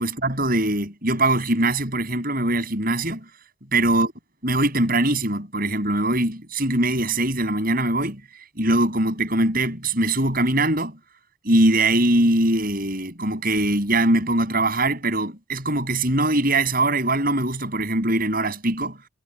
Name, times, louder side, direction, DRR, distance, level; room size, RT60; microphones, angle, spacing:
voice 1, 0.0-3.3 3.7-4.1 4.4-8.2 8.6-11.0 11.4-19.0, right 2 dB, 45° right, 7.2 m, -22 dB
head